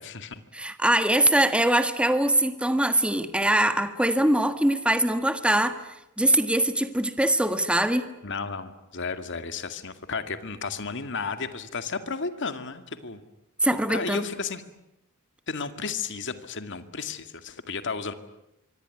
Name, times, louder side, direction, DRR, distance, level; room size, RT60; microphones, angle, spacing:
voice 1, 0.0-0.4 8.2-13.2 13.9-14.6 15.5-18.1, left 4 dB, 55° left, 9 dB, 2.2 m, -33 dB
voice 2, 0.5-5.8 6.2-8.1 13.6-14.2, right 1 dB, 5° right, 9 dB, 1.5 m, -22 dB
24.5 x 24.5 x 9.7 m, 0.86 s
head